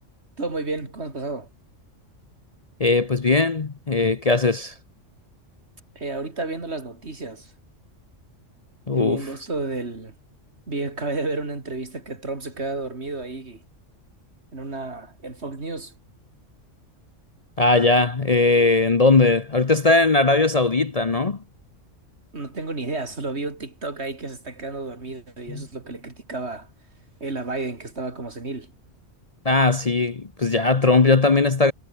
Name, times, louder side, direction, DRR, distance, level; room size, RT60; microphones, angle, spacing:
voice 1, 0.4-1.5 6.0-7.5 8.9-10.1 10.7-13.6 14.5-15.9 22.3-26.7 27.2-28.7, right 3 dB, 55° right, 3.6 m, -31 dB
voice 2, 2.8-4.7 8.9-9.2 17.6-21.4 25.5-25.7 29.4-31.7, left 3 dB, 35° left, 0.9 m, -19 dB
omnidirectional pair, 1.3 m